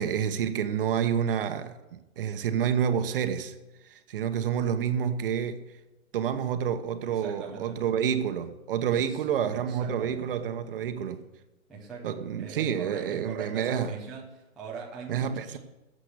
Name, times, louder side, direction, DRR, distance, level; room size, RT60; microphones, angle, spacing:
voice 1, 0.0-3.5 3.8-5.7 6.1-11.2 12.0-13.9 15.1-15.6, right 8 dB, 40° right, 1.1 m, -29 dB
voice 2, 7.0-7.8 8.9-9.2 9.5-10.4 11.7-15.6, right 4 dB, ahead, 0.5 m, -41 dB
13.0 x 7.6 x 8.3 m
hypercardioid pair, 150°, 41 cm